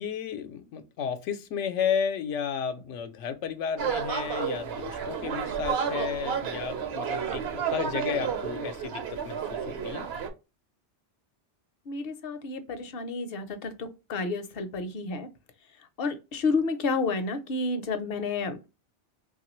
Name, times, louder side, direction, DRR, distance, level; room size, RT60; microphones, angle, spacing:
voice 1, 0.0-10.1, left 7 dB, 85° left, 0.9 m, -33 dB
sound 1, 3.8-10.3, right 7 dB, 65° right, 0.8 m, -31 dB
voice 2, 11.9-15.3 16.0-18.6, left 3 dB, 60° left, 0.7 m, -30 dB
3.2 x 2.4 x 2.9 m
omnidirectional pair, 1.2 m